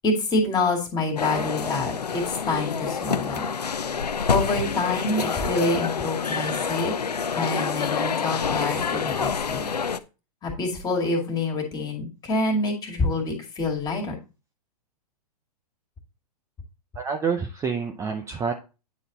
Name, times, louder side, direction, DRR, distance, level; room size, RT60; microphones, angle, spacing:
voice 1, 0.0-3.5 4.3-6.9 7.4-9.7 10.4-14.2, left 2 dB, 20° left, 1 dB, 2.2 m, -26 dB
sound 1, 1.2-10.0, left 6 dB, 90° left, 0.5 m, -27 dB
voice 2, 17.0-18.5, right 5 dB, 15° right, 4 dB, 0.6 m, -27 dB
9.4 x 4.1 x 3.9 m, 0.31 s
figure-of-eight pair, 110°, 20 cm